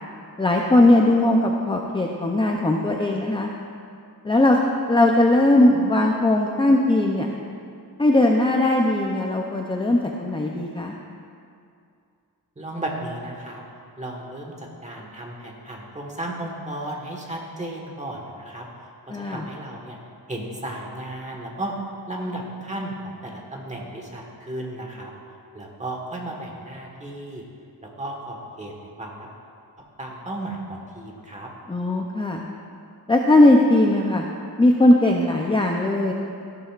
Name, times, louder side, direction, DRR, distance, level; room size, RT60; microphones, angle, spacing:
voice 1, 0.4-3.5 4.2-7.3 8.0-10.9 19.1-19.4 31.7-32.4 33.1-34.2 34.6-36.1, left 1 dB, 15° left, 0 dB, 0.5 m, -19 dB
voice 2, 12.5-13.6 14.0-18.7 19.0-20.0 20.3-21.7 22.1-25.1 25.5-27.4 28.0-29.3 30.0-31.5, right 1 dB, 20° right, -1 dB, 1.4 m, -34 dB
14.0 x 11.5 x 2.5 m, 2.4 s
wide cardioid pair, 150°, 38 cm